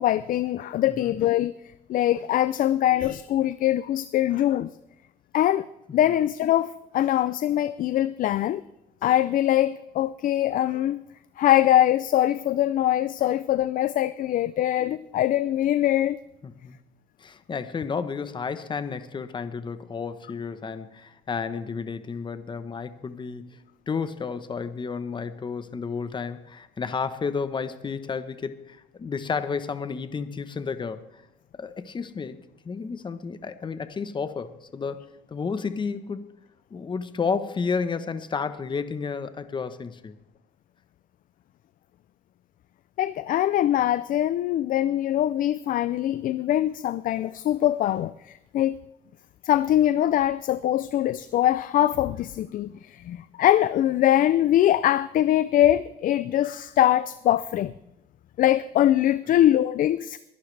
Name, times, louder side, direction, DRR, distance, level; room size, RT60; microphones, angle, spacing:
voice 1, 0.0-1.5 1.9-4.7 5.3-5.7 5.9-8.6 9.0-11.0 11.4-16.2 43.0-48.8 49.4-57.7 58.4-60.2, left 12 dB, 55° left, 15 dB, 0.4 m, -23 dB
voice 2, 16.4-16.8 17.2-31.2 31.5-32.4 32.6-36.3 36.7-40.1, left 5 dB, 30° left, 12 dB, 1.0 m, -32 dB
22.0 x 11.5 x 3.3 m, 0.88 s
cardioid pair, 110°, 17 cm